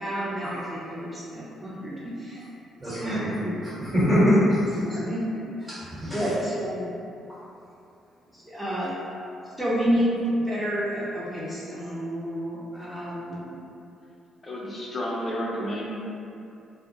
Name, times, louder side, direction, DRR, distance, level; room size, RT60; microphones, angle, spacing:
voice 1, 0.0-2.4 2.8-3.6 4.8-5.5 6.1-6.9 8.5-8.9 9.6-13.5, equal, 5° right, -9 dB, 0.7 m, -29 dB
voice 2, 2.8-3.2 3.8-5.0 5.7-6.2, equal, 25° right, -12 dB, 1.1 m, -23 dB
voice 3, 14.4-15.9, equal, 35° left, -4 dB, 0.6 m, -31 dB
2.2 x 2.0 x 3.0 m, 2.7 s
supercardioid pair, 65°, 0 cm